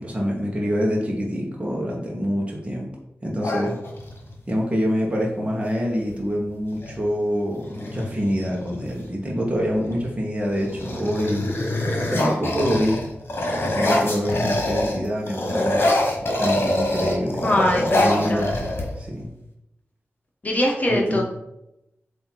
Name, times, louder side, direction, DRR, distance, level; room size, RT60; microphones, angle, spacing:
voice 1, 0.0-2.9 3.2-3.8 4.5-11.5 12.0-13.0 13.6-17.5 17.8-18.6 19.0-19.3 20.9-21.2, equal, 25° right, -2 dB, 1.2 m, -26 dB
sound 1, 3.4-4.3 6.0-6.2 6.5-7.0 7.5-9.1 9.7-10.1 10.4-15.0 15.3-19.2, left 1 dB, 55° left, 1.4 m, -25 dB
voice 2, 17.4-18.5 20.4-21.2, left 1 dB, 35° left, -1 dB, 1.1 m, -22 dB
7.6 x 2.8 x 4.6 m, 0.86 s
wide cardioid pair, 115°, 5 cm